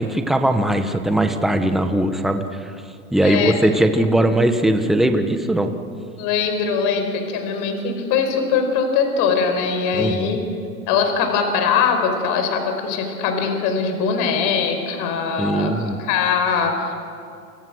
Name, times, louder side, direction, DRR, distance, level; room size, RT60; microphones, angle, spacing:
voice 1, 0.0-2.7 3.1-5.7 9.9-10.4 15.4-16.0, right 1 dB, ahead, 7 dB, 1.3 m, -19 dB
voice 2, 3.2-3.6 6.2-10.4 10.9-15.7 16.0-16.9, left 6 dB, 45° left, 5 dB, 5.2 m, -21 dB
29.0 x 25.0 x 6.4 m, 2.4 s
hypercardioid pair, 120°, 44 cm